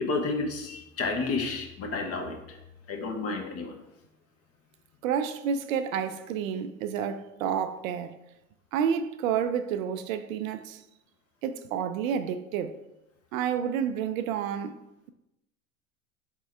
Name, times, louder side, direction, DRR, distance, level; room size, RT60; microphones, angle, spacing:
voice 1, 0.0-2.6 2.9-3.7, left 3 dB, 35° left, 1.0 m, -31 dB
voice 2, 5.0-8.2 8.7-10.8 11.4-12.8 13.3-15.1, right 8 dB, 70° right, 0.5 m, -30 dB
4.5 x 3.6 x 3.2 m
hypercardioid pair, 85°, 42 cm